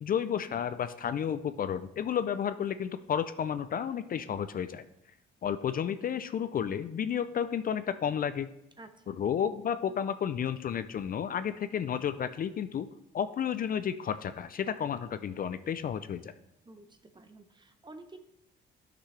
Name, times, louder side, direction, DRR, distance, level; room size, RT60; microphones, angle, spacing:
voice 1, 0.0-4.8 5.4-8.5 9.1-12.9 13.1-16.3, left 8 dB, 45° left, 12 dB, 0.4 m, -32 dB
voice 2, 8.8-9.2 16.6-18.2, right 2 dB, 25° right, 8 dB, 0.8 m, -51 dB
11.5 x 6.0 x 3.3 m, 0.83 s
cardioid pair, 90°, 20 cm